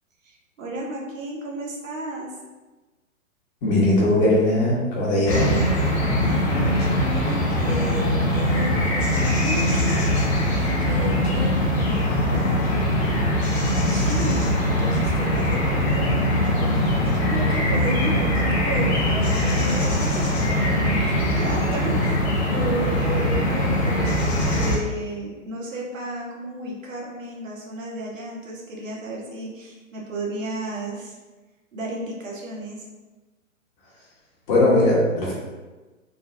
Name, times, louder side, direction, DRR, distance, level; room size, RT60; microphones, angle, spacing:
voice 1, 0.2-2.3 6.0-10.0 10.6-12.9 13.7-31.1 31.7-32.8, right 1 dB, 70° right, -2 dB, 1.1 m, -33 dB
voice 2, 3.6-5.5 34.5-35.3, left 1 dB, 35° left, -6 dB, 1.4 m, -19 dB
sound 1, 5.3-24.8, left 1 dB, 50° left, 1.0 m, -22 dB
3.8 x 2.6 x 2.6 m, 1.2 s
figure-of-eight pair, 120°, 40 cm